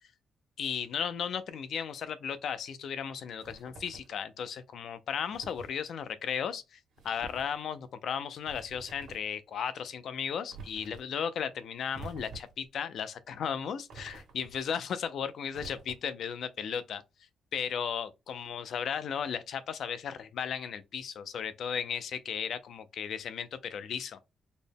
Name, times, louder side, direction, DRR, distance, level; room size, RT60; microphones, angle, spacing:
voice 1, 0.6-6.8 7.0-17.0 17.5-24.2, left 7 dB, 65° left, 0.4 m, -35 dB
sound 1, 3.4-4.2 5.3-5.8 7.0-7.5 8.4-9.3 10.5-11.0 11.9-12.7 13.9-14.6 15.5-16.2, right 3 dB, 85° right, 1.3 m, -48 dB
4.1 x 2.1 x 3.4 m
wide cardioid pair, 165°, 0 cm